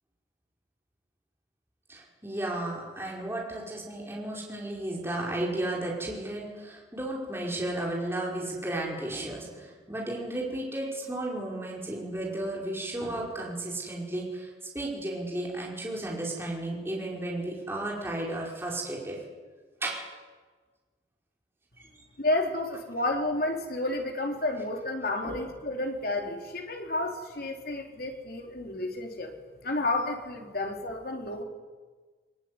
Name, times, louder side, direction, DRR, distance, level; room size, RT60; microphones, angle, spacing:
voice 1, 1.9-14.5 14.7-19.2 19.8-20.0 21.8-21.9 25.2-25.4, right 1 dB, 15° right, -3 dB, 5.4 m, -33 dB
voice 2, 22.2-29.3 29.6-31.4, left 2 dB, 55° left, 2 dB, 3.6 m, -31 dB
22.0 x 22.0 x 9.7 m, 1.4 s
head